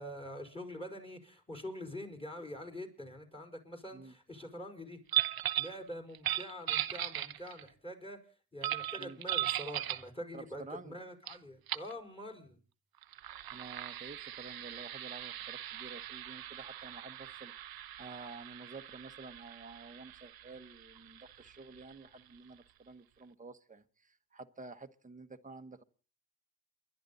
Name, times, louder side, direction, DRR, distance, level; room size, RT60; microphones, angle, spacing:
voice 1, 0.0-5.0 5.6-8.2 8.5-12.6, equal, 15° left, 5.0 m, -45 dB
sound 1, 5.1-5.8 6.1-7.7 8.6-10.1 11.3-11.4 11.7-11.9 13.0-22.3, right 12 dB, 60° right, 0.8 m, -38 dB
voice 2, 10.3-10.9 13.5-17.5 18.0-25.8, right 3 dB, 20° right, 1.3 m, -50 dB
29.0 x 11.0 x 4.1 m
supercardioid pair, 60°, 41 cm